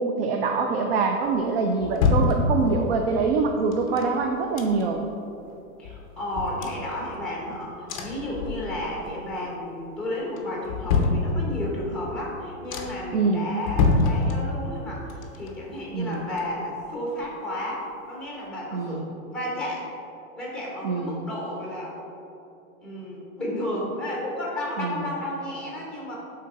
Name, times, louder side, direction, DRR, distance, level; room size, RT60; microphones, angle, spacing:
voice 1, 0.0-5.0 13.1-13.5 15.9-16.2 18.7-19.1 20.8-21.3 24.8-25.1, right 4 dB, 45° right, 3 dB, 0.5 m, -25 dB
sound 1, 1.3-3.0 3.7-5.1 5.5-5.6 5.8-7.5 7.9-9.1 9.4-9.9 10.3-11.8 12.3-12.4 12.7-13.2 13.6-14.8 15.1-16.9 17.2-17.3, left 4 dB, 25° left, 0.5 m, -27 dB
voice 2, 5.8-19.1 19.3-19.9 20.4-22.0 22.8-26.1, left 1 dB, ahead, -4 dB, 0.8 m, -32 dB
9.1 x 3.8 x 4.1 m, 2.9 s
supercardioid pair, 165°, 41 cm